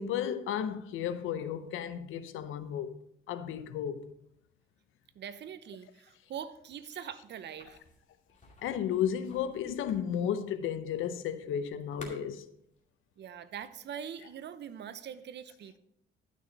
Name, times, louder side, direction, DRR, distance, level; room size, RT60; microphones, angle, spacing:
voice 1, 0.0-3.0 3.3-4.1 8.6-12.5, left 9 dB, 85° left, 0.7 m, -33 dB
voice 2, 5.1-7.8 13.2-15.8, right 8 dB, 60° right, 0.8 m, -43 dB
sound 1, 7.6-12.8, left 2 dB, 35° left, 2.4 m, -52 dB
12.0 x 6.3 x 4.0 m
cardioid pair, 90°, 20 cm